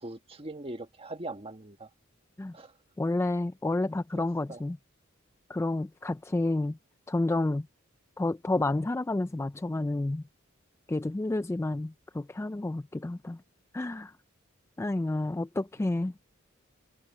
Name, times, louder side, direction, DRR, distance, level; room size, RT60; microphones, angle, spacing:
voice 1, 0.0-1.9 2.5-2.7 4.2-4.6, right 2 dB, 30° right, 1.5 m, -41 dB
voice 2, 3.0-4.8 5.5-6.8 7.1-7.7 8.2-10.2 10.9-13.4 13.7-14.1 14.8-16.1, left 2 dB, 15° left, 0.3 m, -30 dB
head